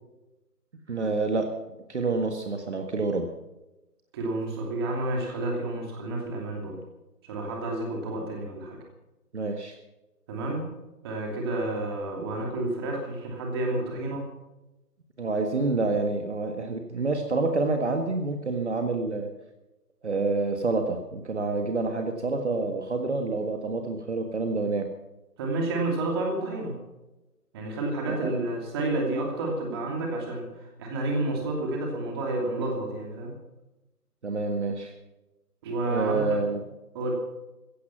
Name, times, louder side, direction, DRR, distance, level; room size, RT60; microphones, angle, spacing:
voice 1, 0.9-1.5 1.9-3.3 9.3-9.8 15.2-19.3 20.0-24.9 28.1-28.3 34.2-34.9 35.9-36.6, right 3 dB, 45° right, 5 dB, 1.8 m, -28 dB
voice 2, 4.1-6.8 7.2-8.8 10.3-10.7 11.0-14.2 25.4-26.8 27.5-33.3 35.6-36.3 36.9-37.1, right 2 dB, 15° right, 1 dB, 2.7 m, -30 dB
16.0 x 15.0 x 5.8 m, 1.0 s
figure-of-eight pair, 160°, 47 cm